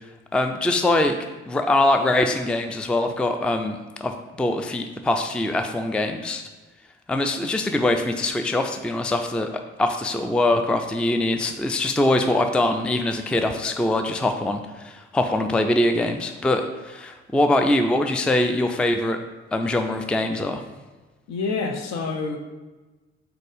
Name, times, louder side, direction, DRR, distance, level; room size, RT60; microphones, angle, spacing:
voice 1, 0.3-1.2 1.5-4.1 4.4-6.4 7.1-9.5 9.8-19.2 19.5-20.6, left 1 dB, 5° left, 6 dB, 0.4 m, -23 dB
voice 2, 21.3-22.4, left 4 dB, 55° left, 5 dB, 0.9 m, -27 dB
4.6 x 4.1 x 5.0 m, 1.2 s
hypercardioid pair, 50°, 32 cm